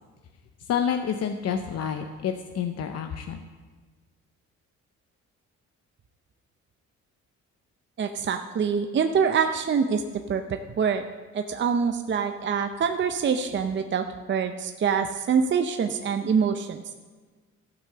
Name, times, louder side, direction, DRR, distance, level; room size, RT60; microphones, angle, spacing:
voice 1, 0.6-3.5, left 7 dB, 55° left, 6 dB, 0.7 m, -29 dB
voice 2, 8.0-10.0 10.3-11.0 11.3-16.8, right 6 dB, 40° right, 6 dB, 0.6 m, -25 dB
13.0 x 6.0 x 6.7 m, 1.4 s
cardioid pair, 90°, 30 cm